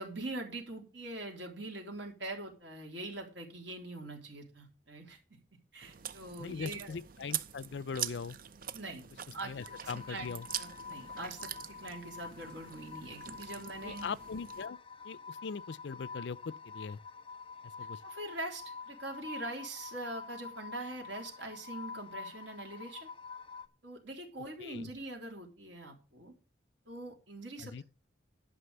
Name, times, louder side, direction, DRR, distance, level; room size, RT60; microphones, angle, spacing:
voice 1, 0.0-5.4 5.7-7.0 8.7-9.0 9.3-14.1 18.0-23.1 23.8-26.3 26.9-27.8, right 2 dB, 75° right, 3.6 m, -43 dB
Chewing mastication, 5.8-14.7, right 10 dB, 50° right, 0.6 m, -44 dB
voice 2, 6.4-8.4 9.4-10.5 13.8-14.8 15.0-17.0 17.8-18.0 24.6-24.9 27.6-27.8, left 5 dB, 70° left, 0.5 m, -40 dB
sound 1, 9.6-23.7, left 5 dB, 30° left, 0.8 m, -47 dB
11.5 x 6.0 x 6.8 m
head